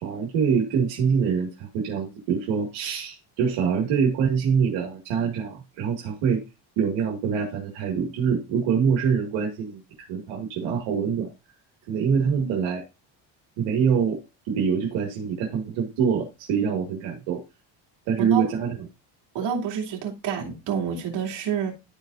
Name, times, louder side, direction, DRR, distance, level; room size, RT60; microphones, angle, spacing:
voice 1, 0.0-6.4 6.8-9.8 10.1-11.3 11.9-12.8 13.6-14.2 14.5-17.4 18.1-18.8, right 6 dB, 85° right, 2.1 m, -24 dB
voice 2, 19.3-21.7, right 7 dB, 70° right, 2.9 m, -28 dB
13.5 x 4.7 x 2.6 m
cardioid pair, 140°, 44 cm